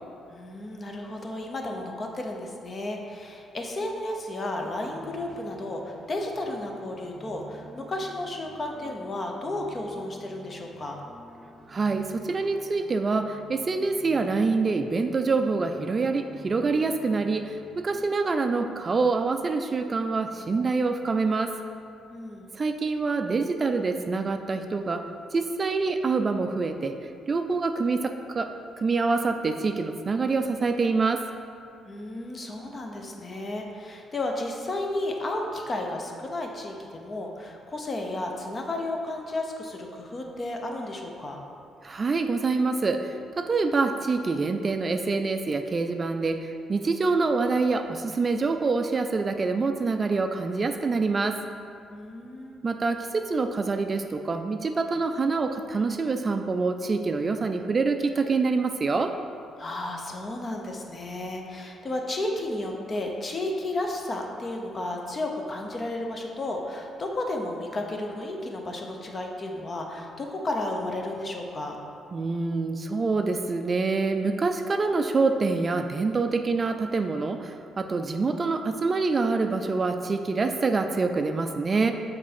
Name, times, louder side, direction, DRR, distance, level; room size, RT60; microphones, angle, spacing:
voice 1, 0.3-11.0 22.1-22.5 31.9-41.4 51.9-52.6 59.6-71.8, left 2 dB, 35° left, 2 dB, 0.8 m, -33 dB
sound 1, 4.7-18.0, right 2 dB, 15° right, 0.9 m, -50 dB
voice 2, 11.7-21.5 22.5-27.0 27.3-28.5 28.8-31.2 41.8-51.4 52.6-59.1 72.1-81.9, right 4 dB, 35° right, 6 dB, 0.3 m, -26 dB
6.1 x 4.0 x 4.3 m, 2.5 s
cardioid pair, 90°, 0 cm